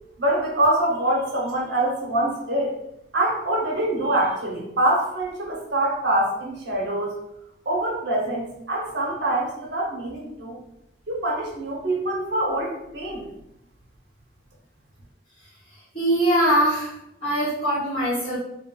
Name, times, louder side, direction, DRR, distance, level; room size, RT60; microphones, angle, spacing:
voice 1, 0.2-2.8 3.1-7.2 7.7-10.6 11.1-13.3, right 1 dB, 65° right, -2 dB, 0.8 m, -24 dB
voice 2, 15.9-17.0 17.2-18.4, right 1 dB, 30° left, -13 dB, 1.1 m, -22 dB
2.3 x 2.1 x 3.7 m, 0.83 s
head